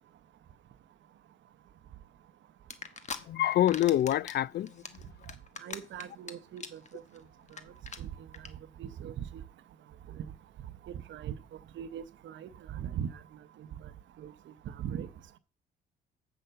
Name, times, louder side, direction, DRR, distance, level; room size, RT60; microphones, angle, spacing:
sound 1, 2.7-3.2 3.5-4.4 4.7-6.3 6.6-6.9 7.2-7.3 7.5-7.6 7.9-8.0 8.3-8.5, left 5 dB, 35° left, 1.1 m, -40 dB
voice 1, 3.2-5.3, left 12 dB, 55° left, 0.4 m, -27 dB
voice 2, 5.6-6.8 8.0-8.1 8.8-9.4 10.2-10.3 11.1-11.3 11.8-13.1 14.2-14.3 14.8-15.1, right 9 dB, 70° right, 0.8 m, -39 dB
7.6 x 5.8 x 6.8 m
cardioid pair, 90°, 20 cm